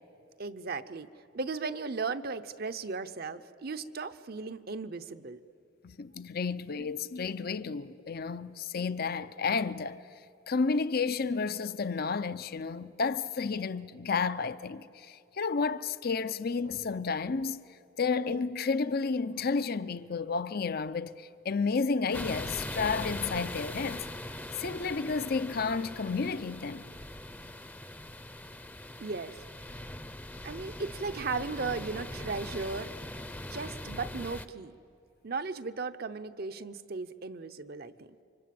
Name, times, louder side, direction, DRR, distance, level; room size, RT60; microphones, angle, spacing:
voice 1, 0.4-1.1 1.3-5.4 6.8-6.9 29.0-29.4 30.4-32.9 33.5-34.8 35.2-38.1, right 4 dB, 50° right, 0.8 m, -36 dB
voice 2, 5.8-10.0 10.5-17.6 18.0-24.1 24.6-26.8, left 4 dB, 50° left, 0.6 m, -31 dB
sound 1, 22.1-34.4, left 1 dB, 10° left, 0.7 m, -41 dB
28.5 x 25.0 x 7.7 m
head